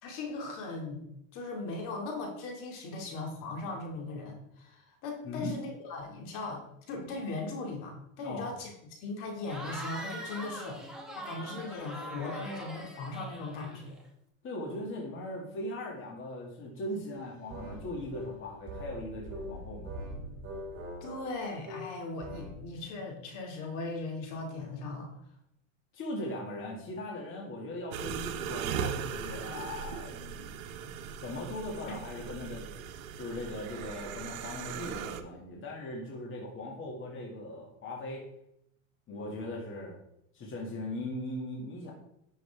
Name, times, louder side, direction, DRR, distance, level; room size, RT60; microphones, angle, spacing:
voice 1, 0.0-10.8 11.1-14.0 21.0-25.1 31.9-32.0, left 3 dB, 50° left, 2 dB, 2.4 m, -38 dB
voice 2, 5.2-5.5 8.2-8.5 14.4-19.9 25.9-30.6 31.2-32.7 33.2-38.3 39.1-40.0 40.3-41.9, left 1 dB, 30° left, -1 dB, 2.2 m, -39 dB
Cheering / Crowd, 9.4-14.1, right 1 dB, ahead, 1.6 m, -43 dB
sound 1, 17.1-22.6, equal, 35° right, 2.9 m, -43 dB
sound 2, 27.9-35.2, right 8 dB, 80° right, 1.0 m, -38 dB
10.5 x 6.3 x 3.5 m, 0.77 s
supercardioid pair, 130°, 41 cm